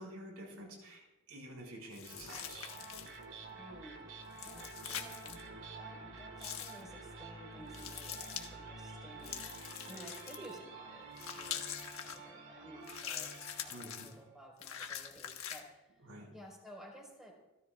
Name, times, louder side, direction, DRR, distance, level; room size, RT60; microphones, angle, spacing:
voice 1, 0.0-2.7 13.7-14.1 16.0-16.3, right 1 dB, 80° right, 0 dB, 6.2 m, -49 dB
sound 1, 1.9-3.2 4.3-5.4 6.4-6.8 7.7-8.5 9.2-10.6 11.2-12.2 12.8-14.1 14.6-15.6, left 9 dB, 70° left, 1.4 m, -44 dB
sound 2, 2.0-14.3, right 3 dB, 55° right, 3.0 m, -50 dB
voice 2, 3.6-4.1 4.4-5.3 5.8-11.1 11.3-17.3, equal, ahead, -2 dB, 4.8 m, -54 dB
29.0 x 13.5 x 2.5 m, 0.99 s
head